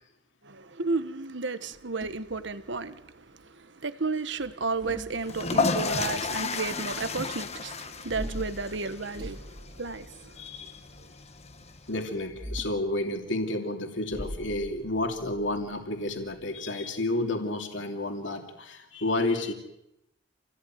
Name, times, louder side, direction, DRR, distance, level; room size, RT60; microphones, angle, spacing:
voice 1, 0.4-10.4, right 4 dB, 65° right, 1.4 m, -33 dB
sound 1, 1.7-3.1 4.4-5.8 8.0-10.6 12.2-12.9 14.1-16.4, equal, 25° right, 3.7 m, -41 dB
sound 2, 5.2-12.0, left 4 dB, 35° left, 1.3 m, -33 dB
voice 2, 10.4-10.8 11.9-19.5, left 2 dB, 70° left, 3.0 m, -31 dB
28.5 x 17.0 x 9.4 m
head